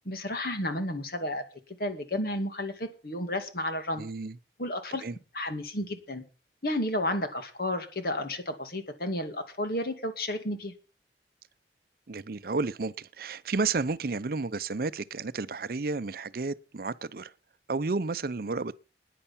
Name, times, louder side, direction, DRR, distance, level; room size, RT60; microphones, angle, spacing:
voice 1, 0.0-1.4 1.8-4.0 4.6-5.0 5.3-6.2 6.6-10.7, left 1 dB, 55° left, 2.4 m, -32 dB
voice 2, 4.0-4.3 5.0-5.1 12.1-17.3 17.7-18.8, right 3 dB, 55° right, 0.6 m, -32 dB
10.0 x 10.0 x 7.2 m
head